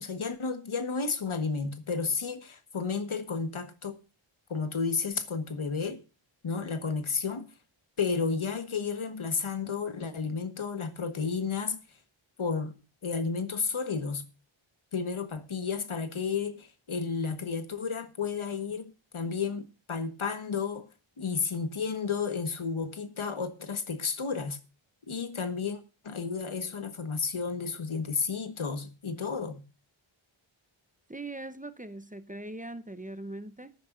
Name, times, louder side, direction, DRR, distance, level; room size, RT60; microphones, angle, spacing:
voice 1, 0.0-4.0 4.5-6.0 6.4-7.5 8.0-11.8 12.4-12.7 13.0-14.2 14.9-20.9 21.2-24.6 25.1-29.6, left 5 dB, 70° left, 1.5 m, -32 dB
voice 2, 31.1-33.7, right 2 dB, 15° right, 0.9 m, -41 dB
19.5 x 10.0 x 2.6 m
wide cardioid pair, 75°, 50 cm